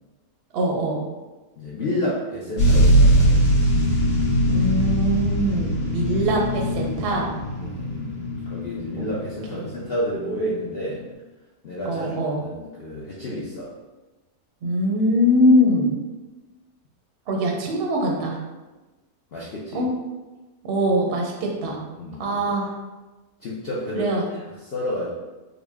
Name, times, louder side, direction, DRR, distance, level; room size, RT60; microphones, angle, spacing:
voice 1, 0.5-1.0 4.4-7.3 9.5-9.7 11.8-12.4 14.6-15.9 17.3-18.4 19.7-19.9 20.6-21.8 22.2-22.8 24.0-24.2, equal, 55° right, 0 dB, 0.6 m, -22 dB
voice 2, 1.6-3.4 7.6-8.1 8.5-11.0 11.6-13.7 19.3-19.9 22.0-22.5 23.4-25.1, equal, 65° left, -6 dB, 0.6 m, -30 dB
sound 1, 2.6-10.1 10.8-10.9, equal, 45° left, 1.1 m, -21 dB
3.9 x 2.1 x 3.4 m, 1.1 s
omnidirectional pair, 1.7 m